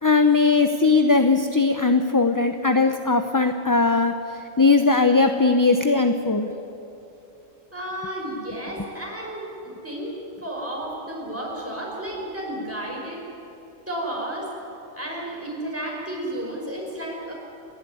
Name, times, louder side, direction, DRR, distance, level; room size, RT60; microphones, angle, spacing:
voice 1, 0.0-4.2 4.6-6.5, left 3 dB, 20° left, 6 dB, 0.6 m, -19 dB
voice 2, 7.7-13.2 13.9-14.6 14.9-17.3, right 1 dB, 10° right, -3 dB, 5.5 m, -32 dB
28.0 x 12.5 x 9.8 m, 3.0 s
omnidirectional pair, 1.3 m